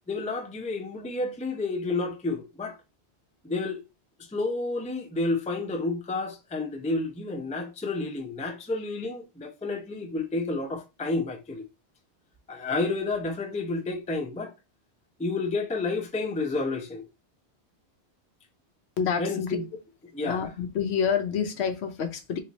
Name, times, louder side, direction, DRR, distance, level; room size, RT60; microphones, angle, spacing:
voice 1, 0.1-2.8 3.4-3.8 4.3-11.6 12.5-14.5 15.2-17.0 19.2-19.6 20.1-20.4, left 3 dB, 10° left, 0.3 m, -30 dB
voice 2, 19.0-19.6 20.2-22.4, left 7 dB, 75° left, 0.9 m, -28 dB
3.1 x 2.3 x 4.0 m
omnidirectional pair, 1.1 m